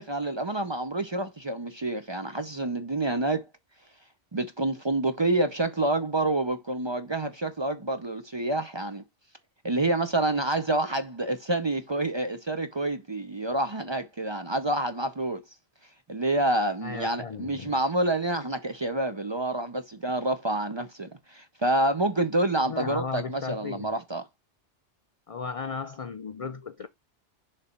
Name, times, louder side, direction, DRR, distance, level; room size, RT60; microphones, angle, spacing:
voice 1, 0.0-3.4 4.3-9.0 9.6-15.4 16.1-24.2, right 2 dB, 30° right, 0.5 m, -28 dB
voice 2, 16.8-17.8 22.6-24.0 25.3-26.9, left 5 dB, 60° left, 0.3 m, -35 dB
6.7 x 3.4 x 4.3 m
omnidirectional pair, 1.2 m